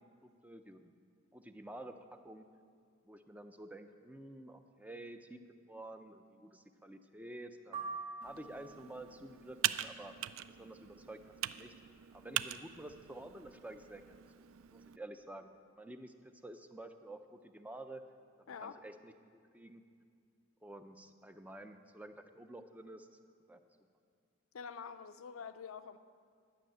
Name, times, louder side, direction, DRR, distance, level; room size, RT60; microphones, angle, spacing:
voice 1, 0.2-0.9 1.3-1.9 2.2-2.4 3.0-5.4 5.7-7.8 8.2-10.1 10.5-11.2 11.6-11.7 12.1-14.2 14.7-15.5 15.8-16.1 16.4-18.0 18.5-19.8 20.6-23.1 23.5-23.6, right 1 dB, 5° right, 7 dB, 0.5 m, -50 dB
sound 1, 7.7-9.0, right 4 dB, 35° right, 1.3 m, -44 dB
Computer keyboard, 8.2-15.0, right 12 dB, 75° right, 0.4 m, -42 dB
voice 2, 18.5-18.8 24.5-26.0, left 6 dB, 85° left, 11 dB, 0.5 m, -46 dB
12.0 x 6.4 x 8.8 m, 2.2 s
head